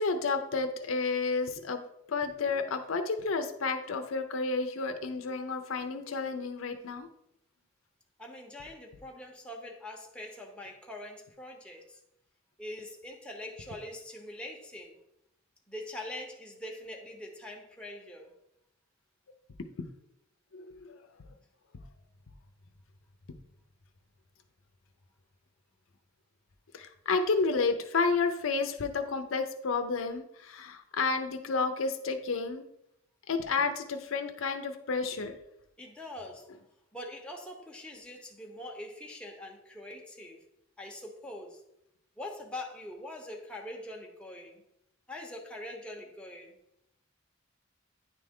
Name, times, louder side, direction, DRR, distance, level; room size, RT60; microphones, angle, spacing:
voice 1, 0.0-1.8 2.1-7.1 19.8-19.9 20.5-21.0 26.7-32.6 33.3-35.4, left 4 dB, 75° left, 6 dB, 0.6 m, -31 dB
voice 2, 8.2-12.0 12.6-15.0 15.7-18.3 35.8-36.5 36.9-40.4 40.8-41.6 42.2-44.6 45.1-46.6, left 1 dB, 5° left, -1 dB, 0.9 m, -43 dB
9.6 x 3.3 x 3.6 m, 0.80 s
head